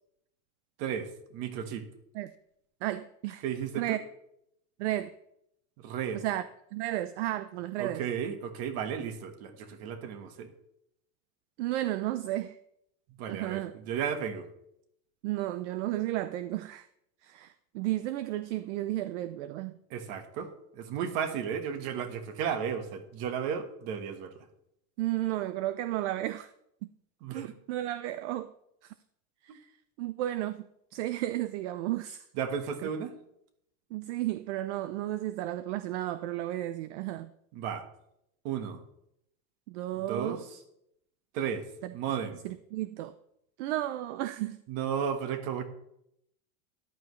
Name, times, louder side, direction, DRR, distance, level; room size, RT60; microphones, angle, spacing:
voice 1, 0.8-1.9 3.4-4.0 5.8-6.2 7.8-10.5 13.2-14.5 19.9-24.3 27.2-27.5 29.5-29.6 32.3-33.1 37.5-37.8 38.4-38.8 40.1-40.4 41.3-41.6 41.9-42.4 44.7-45.6, right 7 dB, 40° right, 1.4 m, -34 dB
voice 2, 2.8-3.4 3.7-4.0 4.8-5.1 6.1-6.5 6.7-8.0 11.6-12.6 13.3-13.7 15.2-16.9 17.2-19.7 25.0-26.5 27.3-28.5 28.8-28.9 29.4-29.7 30.0-32.3 33.9-37.3 39.7-40.6 41.8-41.9 42.4-43.2 43.6-44.6, right 14 dB, 60° right, 0.6 m, -33 dB
13.5 x 11.5 x 3.2 m
supercardioid pair, 180°, 39 cm